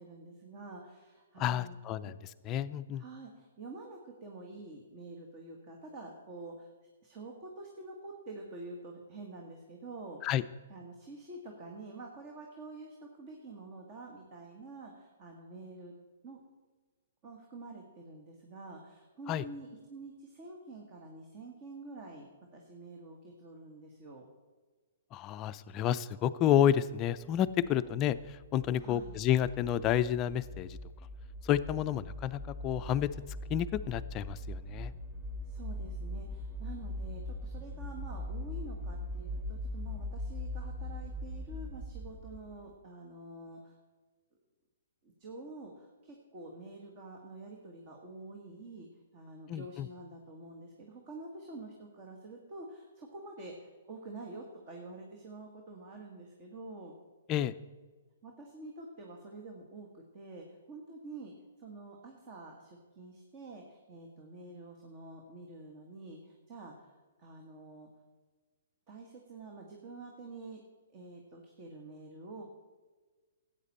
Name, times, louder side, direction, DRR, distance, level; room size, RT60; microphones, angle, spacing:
voice 1, 0.0-1.8 2.0-2.1 3.0-6.7 7.0-10.2 10.7-15.9 16.2-16.4 17.2-24.2 27.7-27.9 28.7-29.2 35.4-43.8 45.0-48.9 49.1-56.9 58.2-61.3 61.6-66.9 67.2-67.9 68.9-70.6 70.9-72.4, right 2 dB, 35° right, 1 dB, 1.6 m, -48 dB
voice 2, 1.4-2.1 2.5-3.0 10.2-10.4 19.3-19.4 25.1-28.2 28.5-30.8 31.4-33.1 33.5-34.9 49.5-49.9 57.3-57.5, left 10 dB, 30° left, 13 dB, 0.4 m, -30 dB
sound 1, 27.4-42.6, left 1 dB, 20° right, 0.9 m, -41 dB
13.0 x 8.8 x 4.2 m, 1.4 s
hypercardioid pair, 130°, 0 cm